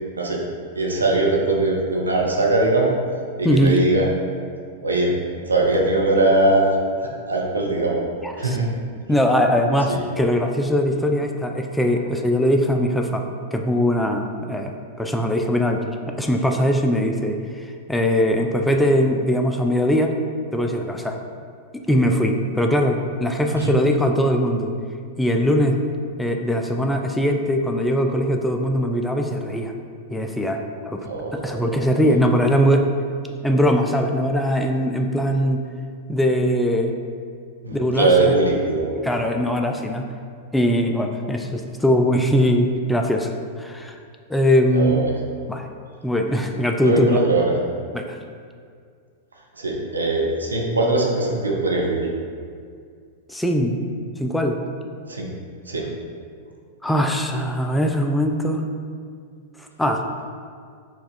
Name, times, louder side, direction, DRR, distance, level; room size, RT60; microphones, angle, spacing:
voice 1, 0.7-2.9 3.4-4.2 4.8-5.1 5.5-6.8 7.3-8.1 8.4-8.7 9.9-10.0 23.5-23.7 31.0-31.6 37.6-38.9 44.7-45.1 46.3-46.4 46.8-47.5 49.6-52.1 55.1-55.3 55.7-55.9, right 2 dB, 85° right, -2 dB, 0.7 m, -21 dB
voice 2, 3.4-3.8 8.2-8.6 9.1-13.2 13.5-15.8 16.1-17.4 17.9-20.2 20.5-21.2 21.9-24.7 25.2-25.8 26.2-29.7 30.1-32.9 33.4-35.6 36.1-36.9 37.7-38.4 39.0-40.1 40.5-43.3 43.6-43.9 44.3-45.0 45.5-45.7 46.0-47.2 47.9-48.2 53.3-53.8 54.2-54.6 56.8-58.7 59.6-60.0, equal, 5° left, 3 dB, 0.3 m, -21 dB
4.5 x 2.4 x 4.2 m, 2.1 s
figure-of-eight pair, 95°, 0 cm